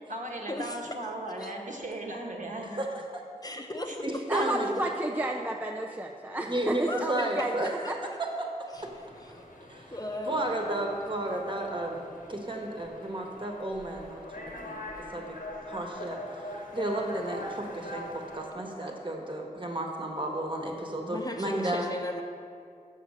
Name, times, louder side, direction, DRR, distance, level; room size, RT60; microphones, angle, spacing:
voice 1, 0.0-2.8 3.9-4.0 4.3-4.6, right 1 dB, 60° right, -1 dB, 1.2 m, -37 dB
voice 2, 2.7-3.2 4.0-4.7 6.5-6.8 7.1-7.7 8.4-8.5 8.8-8.9 9.6-9.8 10.3-12.0 12.3-15.4 15.7-21.9, right 1 dB, 35° right, 1 dB, 1.2 m, -33 dB
voice 3, 3.4-4.0 4.3-4.4 6.9-7.9 8.7-8.9 9.2-9.5 9.9-10.5 21.0-22.2, left 1 dB, 25° left, 3 dB, 0.7 m, -37 dB
voice 4, 4.3-8.1, right 1 dB, 15° right, 0 dB, 0.5 m, -32 dB
sound 1, 8.7-18.5, left 1 dB, 70° left, 1.1 m, -43 dB
6.4 x 6.4 x 6.2 m, 2.3 s
wide cardioid pair, 55°, 14 cm